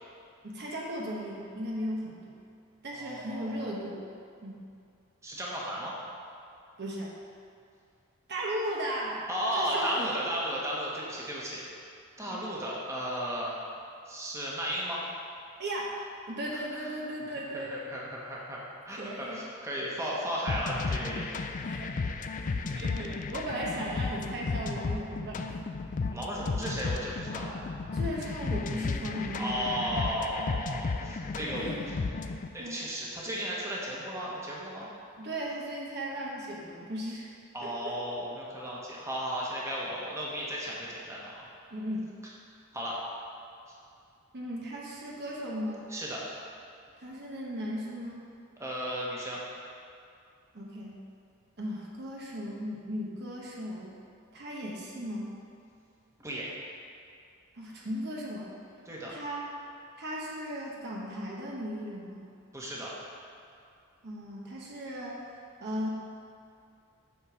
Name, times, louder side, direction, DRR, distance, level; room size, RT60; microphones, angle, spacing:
voice 1, 0.4-2.4 2.8-4.0 4.4-4.6 6.8-7.1 8.3-10.1 12.2-12.4 15.6-16.0 16.3-17.9 19.0-19.4 21.6-21.9 22.3-25.6 26.5-26.6 27.9-29.9 31.3-31.9 32.6-32.8 35.2-37.3 37.6-38.0 41.7-42.1 44.3-45.9 47.0-48.2 50.5-51.0 51.6-53.9 54.3-55.3 57.6-58.5 59.1-59.5 60.0-62.3 64.0-65.2 65.6-65.9, equal, 50° right, -3 dB, 1.0 m, -36 dB
voice 2, 3.0-3.6 5.2-5.9 9.3-11.6 12.2-13.5 14.1-15.0 17.5-18.6 18.8-21.6 22.4-23.1 26.1-27.7 29.3-31.7 32.5-34.9 37.5-41.3 42.7-43.0 45.9-46.2 48.6-49.4 56.2-56.5 58.9-59.1 62.5-62.9, equal, 15° right, -5 dB, 1.2 m, -35 dB
sound 1, 20.5-32.5, left 4 dB, 35° left, 0.4 m, -34 dB
8.2 x 4.2 x 6.4 m, 2.5 s
head